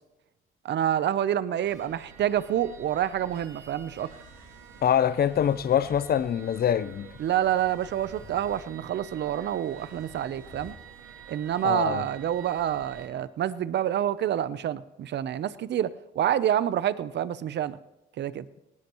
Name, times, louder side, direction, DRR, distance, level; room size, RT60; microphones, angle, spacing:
voice 1, 0.6-4.1 7.2-10.7 11.3-17.8 18.2-18.4, right 10 dB, 60° right, 0.7 m, -27 dB
sound 1, 1.6-13.1, right 7 dB, 90° right, 1.9 m, -49 dB
sound 2, 3.2-10.7, left 4 dB, 80° left, 5.4 m, -53 dB
voice 2, 4.8-7.1 11.6-12.0, left 9 dB, 50° left, 0.7 m, -24 dB
19.0 x 18.0 x 3.1 m
cardioid pair, 90°, 20 cm